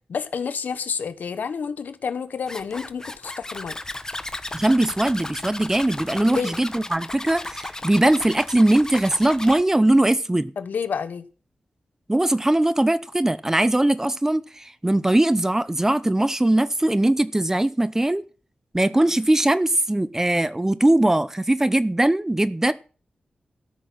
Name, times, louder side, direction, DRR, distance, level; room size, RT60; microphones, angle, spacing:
voice 1, 0.1-3.8 6.2-6.6 10.6-11.2 18.9-19.1, left 6 dB, 80° left, 1.1 m, -29 dB
Zipper (clothing), 2.5-9.6, left 2 dB, 20° left, 1.0 m, -35 dB
voice 2, 4.5-10.5 12.1-18.2 18.7-22.7, right 1 dB, 15° right, 0.7 m, -20 dB
13.5 x 6.2 x 7.6 m
wide cardioid pair, 85°, 3 cm